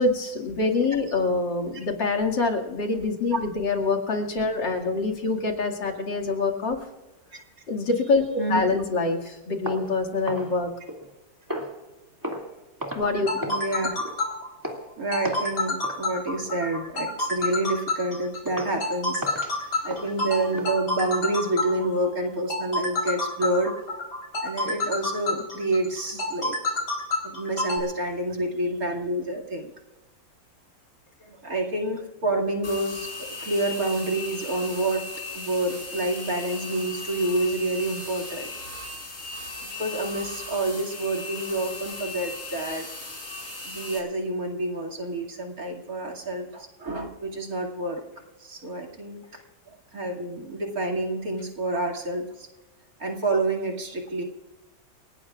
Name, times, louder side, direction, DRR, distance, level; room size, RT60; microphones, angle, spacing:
voice 1, 0.0-6.8 7.7-8.2 8.5-10.7 12.9-13.5, left 3 dB, 80° left, 0 dB, 3.0 m, -25 dB
voice 2, 8.4-8.8 13.4-13.9 15.0-23.7 24.4-26.6 27.2-29.7 31.2-35.0 35.3-38.5 39.8-42.9 43.6-48.0 48.4-49.2 49.7-52.5 53.0-54.2, right 2 dB, 50° right, 0 dB, 2.8 m, -28 dB
sound 1, 9.6-11.1 11.5-11.8 12.2-12.5 12.8-13.1 13.4-13.7 14.0-14.2 14.6-14.9 15.2-15.5 15.8-16.0 16.5-16.7 17.2-17.3 17.8-17.9 18.5-18.8 19.2-20.7, equal, 10° right, 2.2 m, -35 dB
sound 2, 13.0-27.8, left 2 dB, 60° left, 4.5 m, -29 dB
sound 3, 32.6-44.0, left 3 dB, 45° left, 4.9 m, -37 dB
29.5 x 18.0 x 2.5 m, 1.1 s
omnidirectional pair, 2.0 m